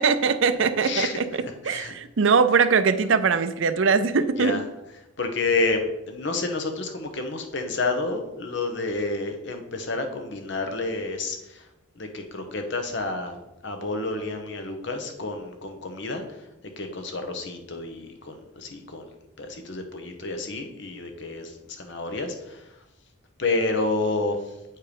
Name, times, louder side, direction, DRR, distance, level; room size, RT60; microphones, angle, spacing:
voice 1, 0.0-1.3 1.7-4.6, right 5 dB, 70° right, 12 dB, 0.5 m, -21 dB
voice 2, 0.8-1.9 4.4-4.6 5.2-11.6 12.0-16.2 16.8-19.0 19.4-22.6 23.4-24.4, left 3 dB, 60° left, 6 dB, 1.0 m, -29 dB
8.4 x 4.5 x 5.1 m, 0.96 s
head